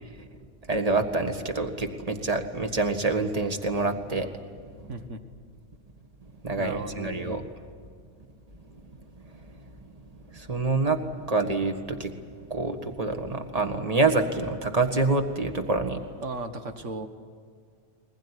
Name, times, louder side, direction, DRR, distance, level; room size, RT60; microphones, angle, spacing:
voice 1, 0.7-4.4 4.8-4.9 6.4-7.5 8.6-8.7 9.2-9.4 10.3-12.1 12.4-16.0, right 3 dB, 30° right, 6 dB, 1.8 m, -27 dB
voice 2, 4.9-5.2 6.6-7.4 16.2-17.1, right 2 dB, 75° right, 7 dB, 1.9 m, -36 dB
22.0 x 21.0 x 10.0 m, 2.1 s
omnidirectional pair, 1.3 m